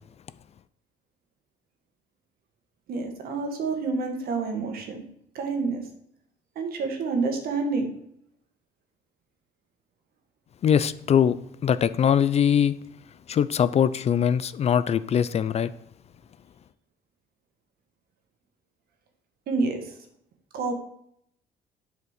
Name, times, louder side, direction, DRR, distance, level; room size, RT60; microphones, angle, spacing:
voice 1, 2.9-5.0 5.3-5.8 6.5-7.9 19.5-19.9 20.5-20.7, right 4 dB, 65° right, 1.8 m, -28 dB
voice 2, 10.6-11.4 11.6-12.7 13.3-15.7, left 8 dB, 40° left, 0.4 m, -22 dB
7.9 x 4.9 x 6.6 m
cardioid pair, 110°, 17 cm